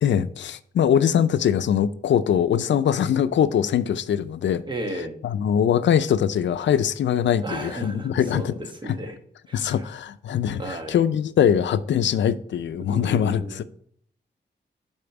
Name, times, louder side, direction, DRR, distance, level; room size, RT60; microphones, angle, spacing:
voice 1, 0.0-4.6 5.2-8.5 8.9-9.0 9.5-13.6, left 9 dB, 85° left, 0.4 m, -22 dB
voice 2, 4.6-5.1 7.4-9.2 9.5-9.9 10.6-11.0 12.8-13.6, right 1 dB, 25° right, 1.2 m, -34 dB
8.6 x 4.3 x 5.9 m
wide cardioid pair, 155°, 18 cm